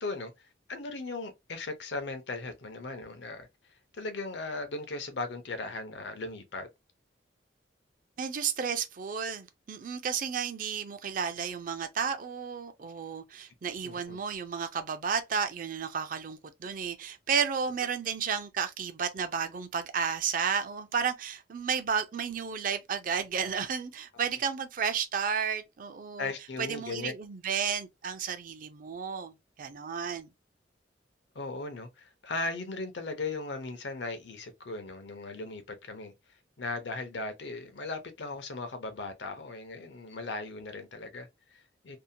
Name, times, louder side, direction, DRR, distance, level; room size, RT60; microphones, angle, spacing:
voice 1, 0.0-3.5 3.9-6.7 13.8-14.2 26.2-27.1 31.3-36.1 36.6-42.0, left 3 dB, 70° left, 0.6 m, -38 dB
voice 2, 8.2-26.3 26.6-29.3 29.6-30.3, right 6 dB, 45° right, 0.4 m, -32 dB
2.7 x 2.1 x 2.6 m
head